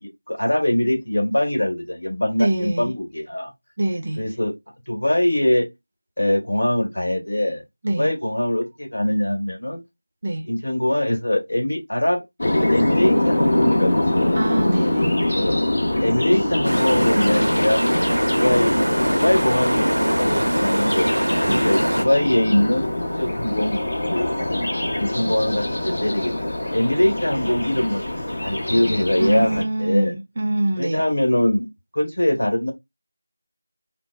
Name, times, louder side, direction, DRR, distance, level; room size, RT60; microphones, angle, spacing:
voice 1, 0.0-3.5 4.2-4.5 4.9-5.7 6.2-7.6 8.0-9.8 10.5-14.4 15.3-15.6 16.0-17.8 18.3-21.1 21.5-22.9 23.2-24.7 25.0-28.0 28.4-30.1 30.8-32.7, left 1 dB, 60° left, 1.4 m, -22 dB
voice 2, 2.4-2.9 3.8-4.2 7.8-8.1 10.2-10.5 14.3-15.1 21.5-21.7 29.2-31.0, right 1 dB, 30° right, 0.5 m, -24 dB
sound 1, 12.4-29.6, left 1 dB, 45° left, 0.9 m, -24 dB
sound 2, 16.6-22.1, right 1 dB, 85° right, 0.5 m, -22 dB
3.8 x 2.1 x 2.3 m
figure-of-eight pair, 175°, 0 cm